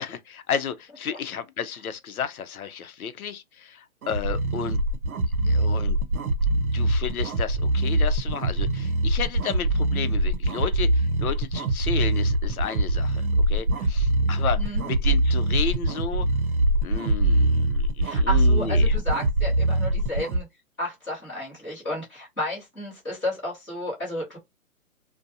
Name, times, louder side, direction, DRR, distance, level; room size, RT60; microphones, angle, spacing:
voice 1, 0.0-4.8 5.4-6.0 6.7-16.3 16.8-19.0, left 7 dB, 75° left, 0.6 m, -32 dB
sound 1, 4.0-20.4, right 1 dB, 75° right, 0.7 m, -23 dB
voice 2, 18.0-20.5 20.8-24.4, left 1 dB, 5° left, 0.8 m, -32 dB
2.5 x 2.2 x 2.6 m
hypercardioid pair, 170°, 43 cm